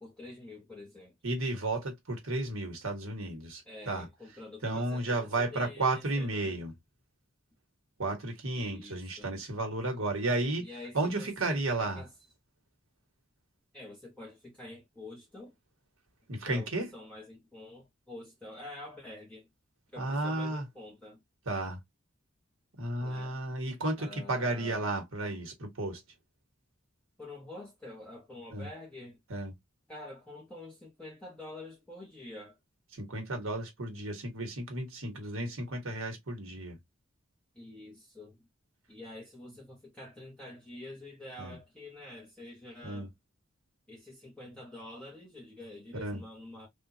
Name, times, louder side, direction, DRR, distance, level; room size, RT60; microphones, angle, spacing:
voice 1, 0.0-1.1 3.7-6.6 8.5-9.4 10.6-12.1 13.7-15.5 16.5-19.5 19.9-21.2 23.0-23.4 24.0-24.9 27.2-29.2 29.9-32.6 37.5-38.4 38.9-43.1 43.9-46.7, left 2 dB, 5° left, 1.0 m, -47 dB
voice 2, 1.2-4.1 4.6-6.7 8.0-10.7 10.9-12.0 16.3-16.9 20.0-20.6 21.4-21.8 22.8-26.0 28.5-28.7 29.3-29.5 32.9-36.8 41.4-41.6 42.8-43.1 45.9-46.2, right 2 dB, 80° right, 1.4 m, -33 dB
3.6 x 2.5 x 2.6 m
head